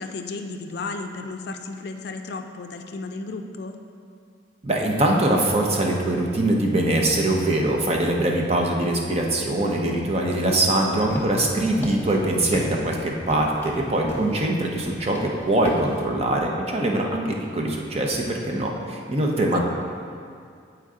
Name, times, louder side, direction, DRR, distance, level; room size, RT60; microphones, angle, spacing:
voice 1, 0.0-3.8 10.6-11.0 19.5-19.6, left 3 dB, 60° left, 5 dB, 0.4 m, -34 dB
voice 2, 4.6-19.6, right 1 dB, 35° right, 0 dB, 0.7 m, -23 dB
sound 1, 10.5-16.0, left 1 dB, 10° left, 0.9 m, -35 dB
8.9 x 4.5 x 3.7 m, 2.3 s
head